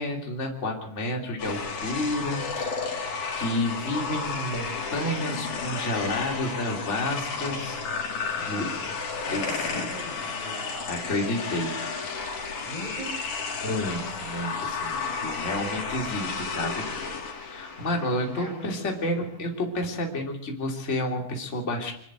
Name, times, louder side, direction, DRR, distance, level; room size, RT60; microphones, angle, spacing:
voice 1, 0.0-2.8 3.3-7.8 8.4-8.6 9.3-9.5 9.7-9.8 10.9-11.7 12.5-12.7 13.6-16.8 17.4-21.9, left 1 dB, 20° left, 1 dB, 3.1 m, -30 dB
sound 1, 1.4-18.7, left 5 dB, 85° left, 4.8 m, -32 dB
voice 2, 8.4-9.0 9.2-10.9 12.6-13.2 14.9-16.5 17.7-19.3, equal, 10° right, 0 dB, 6.6 m, -42 dB
25.0 x 11.5 x 9.1 m, 0.72 s
omnidirectional pair, 4.0 m